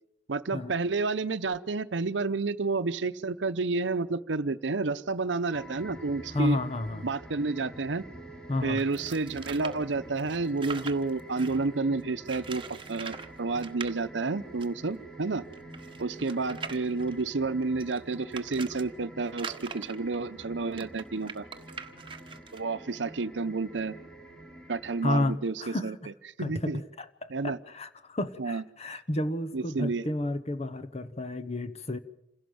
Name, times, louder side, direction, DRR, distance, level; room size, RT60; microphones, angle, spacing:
voice 1, 0.3-6.6 7.0-8.0 8.6-15.4 16.0-21.5 22.5-23.9 24.7-26.0 26.4-26.8 27.3-27.6 28.4-28.6 29.5-30.1, right 3 dB, 90° right, 12 dB, 0.8 m, -30 dB
sound 1, 5.5-25.3, right 1 dB, 5° left, 3.3 m, -47 dB
voice 2, 6.3-7.1 8.5-8.8 25.0-26.1 26.4-32.0, left 1 dB, 35° left, 11 dB, 1.1 m, -31 dB
sound 2, 8.8-11.7 12.3-13.3 13.5-13.9 14.6-14.7 14.9-15.0 15.5-18.8 19.3-22.6, right 5 dB, 30° right, 1.4 m, -42 dB
27.5 x 16.5 x 7.9 m, 0.85 s
head